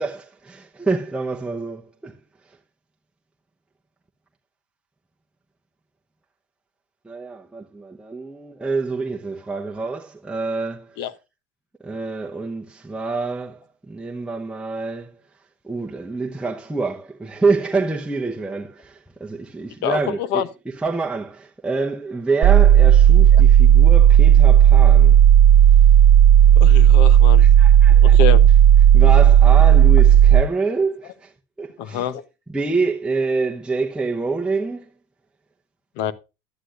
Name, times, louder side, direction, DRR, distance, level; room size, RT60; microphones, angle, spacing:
voice 1, 0.0-2.2 2.5-2.6 7.0-11.0 11.8-15.3 15.6-25.2 27.4-28.2 28.9-31.3 31.6-32.1 32.5-34.9, right 3 dB, 5° right, 0.9 m, -26 dB
voice 2, 19.8-20.5 23.3-23.4 26.6-27.5 28.0-28.5 31.8-32.2 36.0-36.1, left 9 dB, 75° left, 0.9 m, -26 dB
sound 1, 22.4-30.4, right 10 dB, 45° right, 0.6 m, -11 dB
11.5 x 9.7 x 2.5 m
cardioid pair, 125°, 17 cm